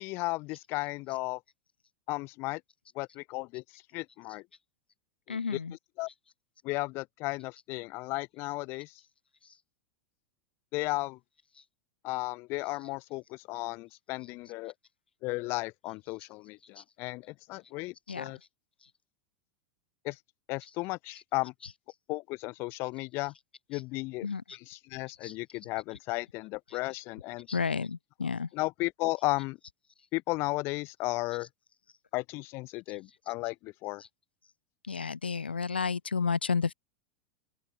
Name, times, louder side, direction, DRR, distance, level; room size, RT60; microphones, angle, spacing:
voice 1, 0.0-1.4 2.1-2.6 2.9-4.4 5.3-5.6 6.0-6.1 6.6-8.9 10.7-11.2 12.0-14.7 15.2-18.4 20.0-20.2 20.5-21.5 22.1-23.3 23.7-24.3 24.7-27.5 28.5-29.6 30.1-31.5 32.1-34.0, left 23 dB, 45° left, 4.2 m, -34 dB
voice 2, 5.3-5.7 16.8-16.9 18.1-18.3 24.2-24.6 25.2-25.3 27.5-28.5 34.8-36.7, left 5 dB, 80° left, 2.9 m, -31 dB
open air
figure-of-eight pair, 90°, 5 cm